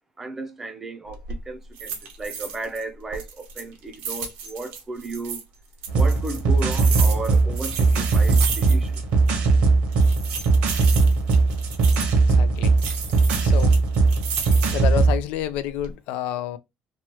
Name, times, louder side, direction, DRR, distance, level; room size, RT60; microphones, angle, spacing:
voice 1, 0.2-1.2 1.5-5.4 5.9-8.9, right 2 dB, 15° right, 0.5 m, -34 dB
sound 1, 1.1-1.4 1.8-2.8 3.1-5.4 5.8-9.0 9.3-9.4 9.9-12.2 12.8-14.9 15.4-15.9, right 6 dB, 90° right, 0.9 m, -33 dB
sound 2, 5.9-15.2, right 3 dB, 60° right, 0.8 m, -19 dB
voice 2, 12.3-12.7 13.4-13.7 14.7-16.6, left 11 dB, 75° left, 0.4 m, -29 dB
3.0 x 2.3 x 2.9 m
cardioid pair, 165°, 2 cm